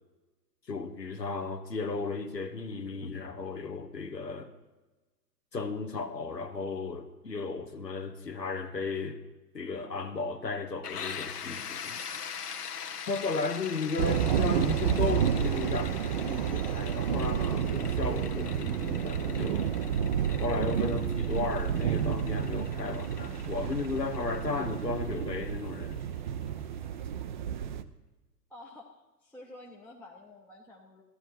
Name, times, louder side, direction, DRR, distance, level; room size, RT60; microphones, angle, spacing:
voice 1, 0.7-4.5 5.5-9.2 9.5-12.0 13.1-19.7 20.4-26.0, left 4 dB, 85° left, 6 dB, 1.2 m, -34 dB
sound 1, 10.8-26.4, left 7 dB, 70° left, 1.3 m, -43 dB
sound 2, 14.0-27.8, right 9 dB, 30° right, 0.4 m, -30 dB
voice 2, 28.5-31.0, left 2 dB, 5° left, -3 dB, 0.7 m, -50 dB
14.5 x 11.5 x 4.4 m, 1.1 s
figure-of-eight pair, 110°, 49 cm